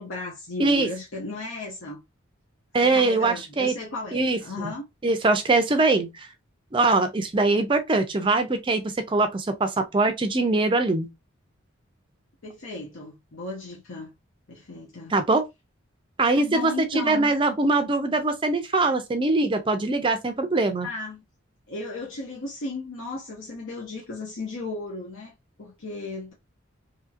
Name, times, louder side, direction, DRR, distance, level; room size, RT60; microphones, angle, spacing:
voice 1, 0.0-2.0 2.8-4.8 12.4-14.1 14.5-15.1 16.3-17.3 20.8-21.2 21.7-26.3, left 2 dB, 70° left, 0.7 m, -35 dB
voice 2, 2.7-3.7 4.1-4.4 4.6-4.7 5.0-6.3 6.7-8.8 9.1-11.1 15.1-15.4 16.2-20.9, right 3 dB, 25° right, 0.4 m, -22 dB
2.8 x 2.7 x 2.4 m
head